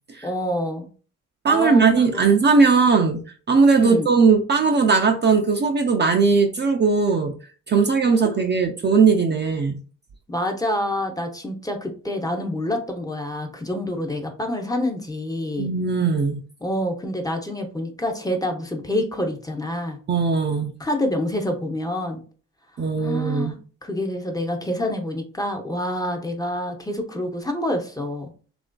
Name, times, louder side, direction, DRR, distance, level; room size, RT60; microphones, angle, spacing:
voice 1, 0.2-0.9 1.5-2.2 3.8-4.1 10.3-15.7 16.6-20.0 20.8-22.2 23.0-23.6 23.8-28.3, left 1 dB, 10° left, 3 dB, 0.6 m, -27 dB
voice 2, 1.4-7.4 7.7-9.8 15.6-16.4 20.1-20.7 22.8-23.5, right 4 dB, 35° right, 3 dB, 0.4 m, -19 dB
3.0 x 2.4 x 2.2 m, 0.39 s
cardioid pair, 75°, 32 cm